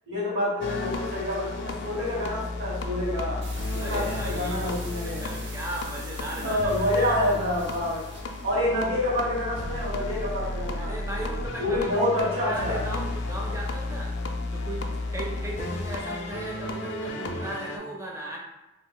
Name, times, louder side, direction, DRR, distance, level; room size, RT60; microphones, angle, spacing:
voice 1, 0.1-3.4 3.7-5.2 6.4-8.0 8.4-10.9 11.6-12.8, left 1 dB, 70° right, -7 dB, 1.5 m, -27 dB
sound 1, 0.6-17.8, left 2 dB, 55° left, 0.3 m, -33 dB
sound 2, 3.4-8.5, right 2 dB, 55° right, 0.7 m, -45 dB
voice 2, 3.8-4.8 5.0-7.2 10.6-14.2 14.5-18.4, right 1 dB, 15° right, -2 dB, 0.4 m, -37 dB
2.8 x 2.3 x 3.8 m, 0.98 s
head